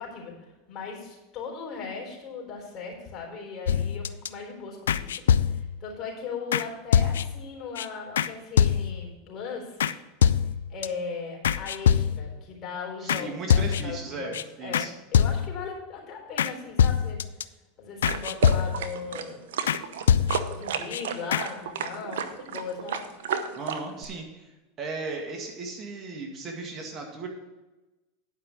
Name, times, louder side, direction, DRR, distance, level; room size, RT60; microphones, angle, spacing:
voice 1, 0.0-9.8 10.7-17.2 17.8-19.4 20.5-23.0, left 5 dB, 40° left, -1 dB, 3.9 m, -38 dB
sound 1, 3.7-4.3 4.9-5.8 6.5-6.7 6.9-7.5 7.8-7.9 8.2-8.3 8.6-9.1 9.8-9.9 10.2-10.9 11.4-12.4 13.1-13.2 13.5-14.0 14.3-14.4 14.7-14.9 15.1-15.7 16.4-16.5 16.8-17.4 18.0-19.0 19.7-19.8 20.1-20.6 20.9-21.0 21.3-21.5, left 8 dB, 90° left, 0.4 m, -23 dB
voice 2, 13.0-14.9 23.6-27.3, right 3 dB, 35° right, 2 dB, 1.9 m, -37 dB
sound 2, 18.1-24.1, right 7 dB, 80° right, 0.8 m, -32 dB
10.5 x 5.4 x 6.5 m, 1.1 s
hypercardioid pair, 105°, 0 cm